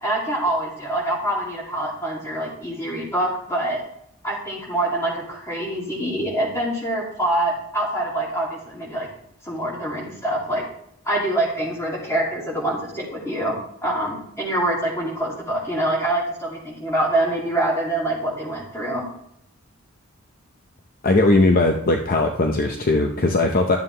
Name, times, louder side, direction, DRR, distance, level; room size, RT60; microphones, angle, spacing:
voice 1, 0.0-3.8 4.2-9.1 9.4-10.6 11.0-19.0, right 1 dB, 15° left, -3 dB, 2.4 m, -25 dB
voice 2, 21.0-23.8, left 2 dB, 40° left, 3 dB, 0.6 m, -19 dB
11.5 x 7.3 x 3.3 m, 0.75 s
head